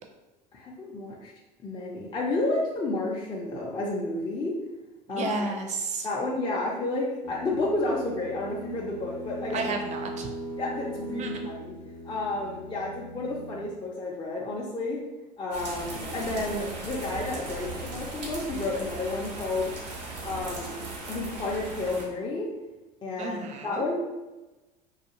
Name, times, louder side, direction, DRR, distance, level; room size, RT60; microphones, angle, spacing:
voice 1, 0.5-1.3 1.6-4.5 5.1-5.5 6.0-9.7 10.6-11.7 12.1-15.0 15.4-19.7 20.2-20.8 21.1-22.5 23.0-23.4 23.6-24.0, left 2 dB, 20° left, -3 dB, 0.5 m, -31 dB
voice 2, 5.1-6.1 9.5-10.3 11.2-11.3 23.2-23.8, right 3 dB, 35° right, 4 dB, 0.5 m, -32 dB
sound 1, 7.2-13.8, right 1 dB, 80° left, 0.6 m, -39 dB
sound 2, 15.5-22.1, right 3 dB, 85° right, 0.7 m, -37 dB
2.4 x 2.3 x 2.8 m, 1.1 s
hypercardioid pair, 75°, 21 cm